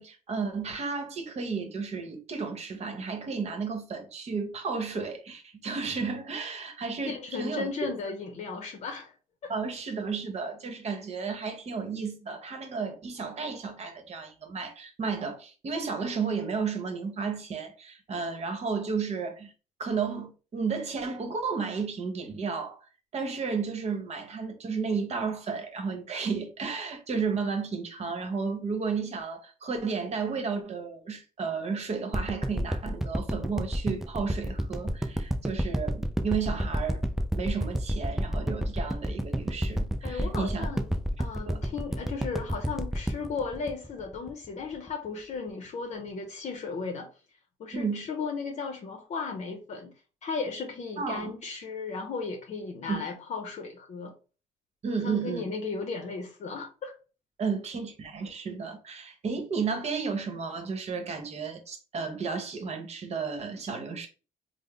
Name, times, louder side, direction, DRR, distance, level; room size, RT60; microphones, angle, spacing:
voice 1, 0.0-7.9 9.5-19.5 19.8-22.8 23.1-37.0 37.3-40.7 41.5-41.6 47.7-48.1 51.0-51.3 52.9-53.0 54.8-55.4 57.4-64.1, right 5 dB, 50° right, 1.0 m, -33 dB
voice 2, 7.1-9.1 9.4-9.5 40.0-40.9 41.2-47.1 47.6-49.9 50.2-54.1 55.0-56.9, left 4 dB, 55° left, 0.7 m, -35 dB
sound 1, 32.1-44.5 44.9-45.0, equal, 5° right, 0.4 m, -29 dB
3.4 x 2.0 x 3.6 m
cardioid pair, 90°, 15 cm